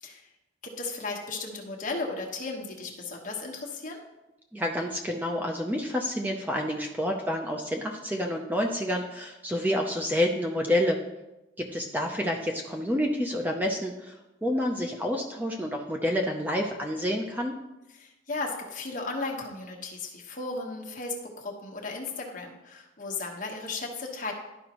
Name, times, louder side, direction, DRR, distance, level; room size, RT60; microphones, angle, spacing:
voice 1, 0.8-4.0 17.9-24.3, left 3 dB, 45° left, 0 dB, 1.2 m, -35 dB
voice 2, 4.5-11.0 11.6-14.2 14.4-17.5, left 1 dB, 10° right, 1 dB, 0.5 m, -28 dB
11.5 x 5.1 x 3.0 m, 0.98 s
head